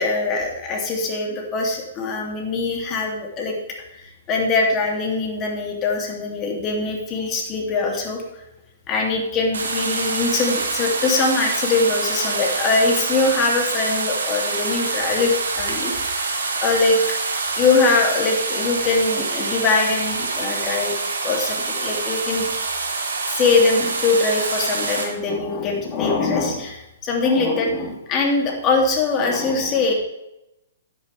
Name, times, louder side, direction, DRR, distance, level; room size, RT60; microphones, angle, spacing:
voice 1, 0.0-3.6 3.9-8.2 8.9-15.9 16.5-17.0 17.6-21.0 21.2-22.5 23.3-29.9, left 3 dB, 30° left, 0 dB, 3.0 m, -22 dB
sound 1, 9.5-25.0, right 3 dB, 80° right, 2.5 m, -26 dB
12.0 x 10.5 x 3.6 m, 0.88 s
hypercardioid pair, 125°, 0 cm